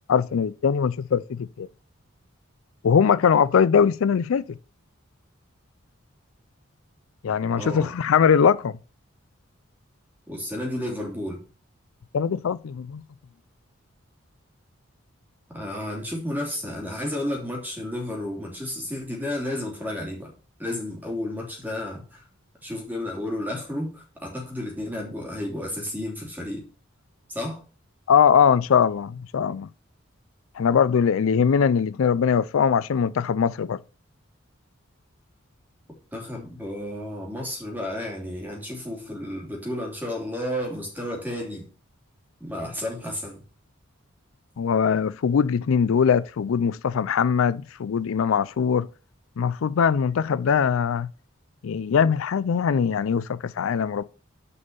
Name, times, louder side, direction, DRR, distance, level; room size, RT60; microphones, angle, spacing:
voice 1, 0.1-1.7 2.8-4.6 7.2-8.8 12.1-13.0 28.1-29.7 30.6-33.8 44.6-48.9 49.4-51.1 51.6-54.0, left 7 dB, 75° left, 0.4 m, -21 dB
voice 2, 7.5-7.9 10.3-11.4 15.5-20.3 20.6-22.2 22.6-26.6 27.3-27.6 36.1-41.7 42.4-43.4, left 1 dB, 10° right, 3.1 m, -32 dB
6.8 x 5.4 x 6.9 m
head